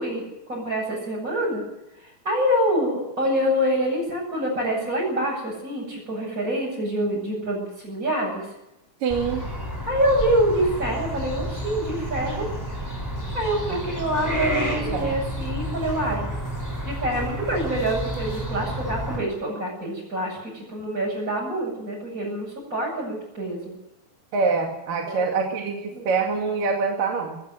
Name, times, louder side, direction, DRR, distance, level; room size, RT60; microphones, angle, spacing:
voice 1, 0.0-1.6 2.0-8.5 9.9-12.5 13.3-16.3 16.8-23.7 25.0-26.0, equal, 20° right, -6 dB, 7.9 m, -26 dB
voice 2, 9.0-9.4 13.7-13.8 14.8-15.1 24.3-27.4, right 4 dB, 65° right, 1 dB, 3.9 m, -25 dB
sound 1, 9.1-19.2, equal, 5° left, 6.2 m, -30 dB
20.0 x 18.5 x 7.8 m, 0.89 s
omnidirectional pair, 4.3 m